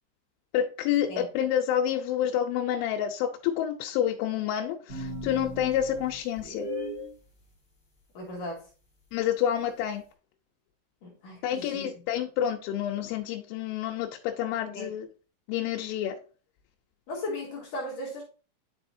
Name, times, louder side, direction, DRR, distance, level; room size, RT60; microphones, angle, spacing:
voice 1, 0.5-6.7 9.1-10.0 11.4-15.1 15.5-16.2, left 10 dB, 90° left, 3.2 m, -28 dB
sound 1, 4.9-7.1, equal, 15° left, 2.7 m, -37 dB
voice 2, 8.1-8.7 11.0-11.9 14.7-14.9 17.1-18.2, left 1 dB, 60° left, 2.4 m, -36 dB
10.0 x 4.9 x 2.6 m
omnidirectional pair, 5.3 m